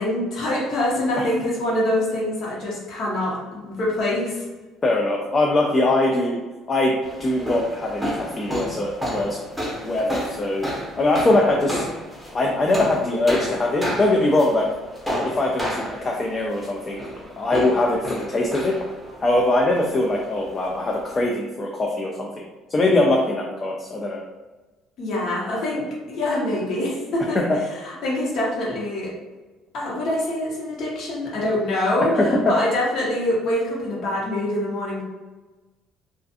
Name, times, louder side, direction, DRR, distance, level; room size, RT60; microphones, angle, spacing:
voice 1, 0.0-4.4 25.0-27.4 27.8-29.1 29.7-35.0, left 1 dB, 55° left, -4 dB, 0.9 m, -25 dB
voice 2, 4.8-6.4 6.7-6.9 7.2-9.4 9.8-10.7 11.0-11.9 12.3-14.7 15.2-17.0 17.4-18.8 19.2-22.3 22.7-24.2 27.4-27.5 32.2-32.5, left 2 dB, 25° left, -1 dB, 0.3 m, -22 dB
sound 1, 7.0-21.3, equal, ahead, 0.7 m, -32 dB
2.4 x 2.3 x 2.6 m, 1.2 s
cardioid pair, 125°, 0 cm